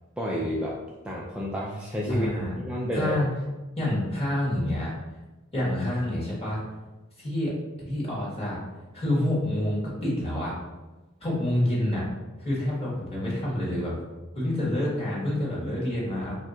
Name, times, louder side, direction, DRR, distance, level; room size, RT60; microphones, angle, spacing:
voice 1, 0.2-0.8 1.0-2.3 2.6-3.2, equal, 5° right, -5 dB, 0.3 m, -29 dB
voice 2, 2.1-2.5 2.9-3.3 3.8-4.9 5.5-6.6 7.2-7.5 7.9-8.6 8.9-10.5 11.2-12.0 12.4-13.9 14.3-16.3, left 1 dB, 30° left, -6 dB, 1.4 m, -27 dB
3.2 x 2.8 x 3.7 m, 1.1 s
head